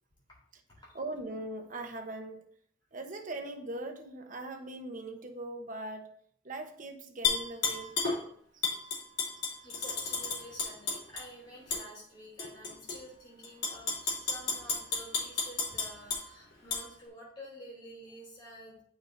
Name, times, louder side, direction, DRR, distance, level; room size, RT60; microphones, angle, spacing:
voice 1, 0.9-2.4 2.9-6.1 6.4-8.0 8.5-8.6, right 2 dB, 40° right, 5 dB, 1.0 m, -40 dB
Tap / Glass, 7.2-8.2 8.6-11.2 11.7-11.8 12.4-13.0 13.4-16.2 16.7-16.8, left 4 dB, 60° left, 3.4 m, -32 dB
voice 2, 9.6-18.8, equal, 25° left, -6 dB, 3.0 m, -50 dB
12.5 x 5.3 x 2.6 m, 0.63 s
head